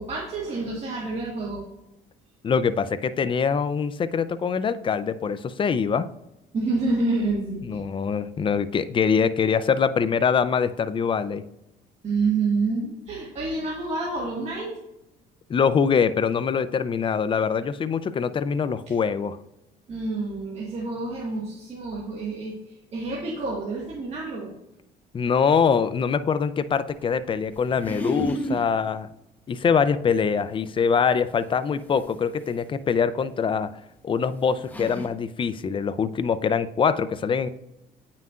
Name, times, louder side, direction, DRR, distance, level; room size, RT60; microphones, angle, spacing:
voice 1, 0.0-1.7 6.5-7.8 12.0-14.8 18.9-19.0 19.9-22.6 22.9-24.5, right 3 dB, 40° right, -4 dB, 1.7 m, -28 dB
voice 2, 2.4-6.1 7.6-11.4 15.5-19.4 25.1-29.1 29.5-33.7 34.0-37.5, left 6 dB, 30° left, 14 dB, 0.4 m, -24 dB
sound 1, 27.5-28.7 30.7-30.8 31.9-32.0 33.5-33.6 34.2-34.3 34.6-35.1, equal, 10° left, 1.0 m, -30 dB
8.9 x 5.7 x 2.4 m, 0.89 s
cardioid pair, 110°, 17 cm